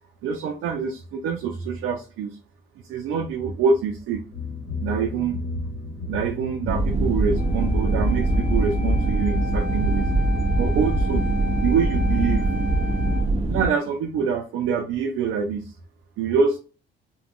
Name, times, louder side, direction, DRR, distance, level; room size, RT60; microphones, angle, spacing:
voice 1, 0.2-2.4 2.9-4.2 4.8-5.4 6.1-10.1 10.5-11.2 11.6-12.5 13.5-15.7 16.2-16.6, right 6 dB, 85° right, 3 dB, 0.5 m, -25 dB
sound 1, 4.3-9.9, left 2 dB, 35° left, 1.3 m, -34 dB
sound 2, 6.7-13.7, right 2 dB, 30° right, 0.5 m, -22 dB
Wind instrument woodwind instrument, 7.3-13.3, left 6 dB, 5° right, 1.1 m, -35 dB
3.5 x 2.2 x 2.3 m, 0.36 s
cardioid pair, 90°, 20 cm